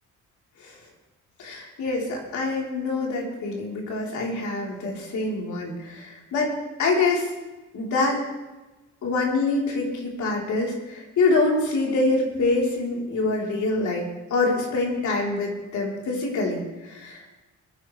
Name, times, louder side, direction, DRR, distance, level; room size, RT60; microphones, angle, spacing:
voice 1, 1.4-7.3 7.7-8.2 9.0-17.4, left 3 dB, 70° left, -2 dB, 3.7 m, -25 dB
22.5 x 10.0 x 3.3 m, 1.1 s
cardioid pair, 90°, 30 cm